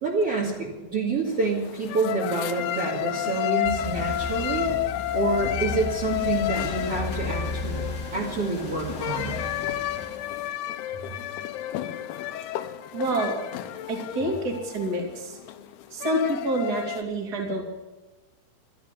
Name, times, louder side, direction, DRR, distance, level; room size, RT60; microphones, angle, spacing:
voice 1, 0.0-4.7 5.1-7.8 8.1-9.4, right 3 dB, 45° right, -3 dB, 2.8 m, -27 dB
sound 1, 1.3-17.0, left 13 dB, 90° left, 2.8 m, -31 dB
sound 2, 3.6-10.5, left 2 dB, 30° left, 3.2 m, -35 dB
voice 2, 12.9-13.3 13.9-15.4 15.9-17.6, right 1 dB, 25° right, 1 dB, 2.9 m, -27 dB
13.5 x 13.0 x 7.1 m, 1.2 s
omnidirectional pair, 4.4 m